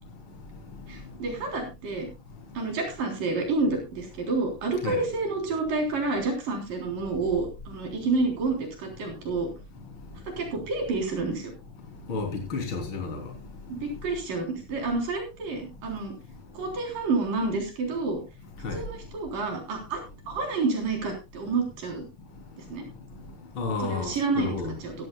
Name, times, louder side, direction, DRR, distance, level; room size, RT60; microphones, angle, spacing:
voice 1, 0.9-2.1 2.6-9.5 10.4-11.5 13.7-16.1 16.6-18.2 18.7-20.0 20.3-22.1 22.7-22.8 23.8-24.5 24.8-24.9, right 3 dB, 75° right, 5.3 m, -29 dB
voice 2, 12.1-13.2 18.6-18.8 23.6-24.7, left 3 dB, 35° left, 4.0 m, -31 dB
16.0 x 14.0 x 2.3 m
omnidirectional pair, 3.9 m